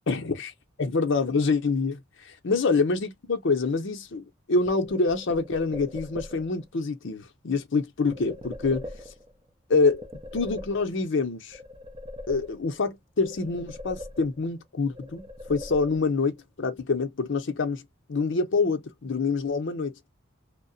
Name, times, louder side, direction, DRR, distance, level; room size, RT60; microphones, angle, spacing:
voice 1, 0.1-0.5 0.8-2.0 2.4-8.9 9.7-10.1 10.3-11.6 12.3-17.8 18.1-19.9, left 4 dB, 60° left, 0.6 m, -26 dB
sound 1, 4.6-6.6 8.1-9.4 9.8-11.2 11.5-12.9 13.2-14.6 14.9-16.3, left 1 dB, 25° right, 0.6 m, -41 dB
2.7 x 2.1 x 2.5 m
head